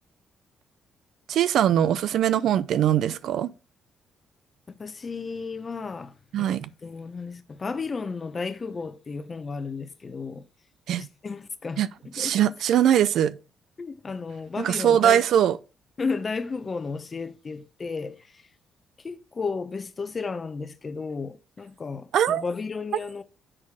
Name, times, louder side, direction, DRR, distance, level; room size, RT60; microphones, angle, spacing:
voice 1, 1.3-3.5 6.3-6.7 10.9-11.1 11.8-11.9 12.2-13.4 14.6-15.6 22.1-22.4, right 10 dB, 75° right, 0.4 m, -21 dB
voice 2, 4.7-10.5 11.0-12.5 13.8-15.2 16.0-18.4 19.0-23.2, left 4 dB, 35° left, 0.9 m, -33 dB
7.5 x 4.2 x 4.8 m
cardioid pair, 90°, 0 cm